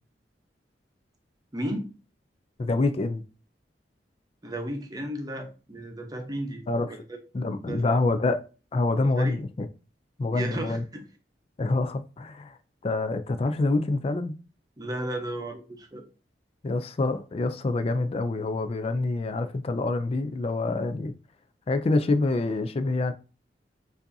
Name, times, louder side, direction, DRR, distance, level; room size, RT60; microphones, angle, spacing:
voice 1, 1.5-1.9 4.4-6.6 6.9-7.2 7.7-7.8 9.2-9.4 10.3-11.0 14.8-16.0, right 1 dB, 20° right, 0.8 m, -34 dB
voice 2, 2.6-3.2 6.7-6.9 7.3-8.4 8.7-9.7 10.2-10.8 11.6-12.6 12.8-14.4 16.6-21.1 21.7-23.1, left 2 dB, 35° left, 0.4 m, -26 dB
6.9 x 2.7 x 2.6 m
head